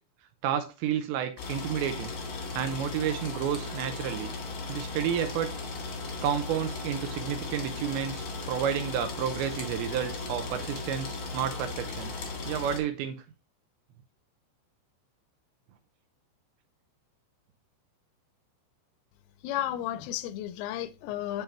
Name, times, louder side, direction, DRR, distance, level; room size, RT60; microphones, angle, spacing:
voice 1, 0.4-2.1 2.5-4.3 4.7-5.5 6.2-12.1 12.5-13.2, right 9 dB, 85° right, 2.7 m, -31 dB
sound 1, 1.4-12.8, left 3 dB, 55° left, 1.8 m, -37 dB
voice 2, 19.4-21.4, left 12 dB, 90° left, 3.3 m, -33 dB
8.9 x 5.5 x 3.0 m
omnidirectional pair, 5.7 m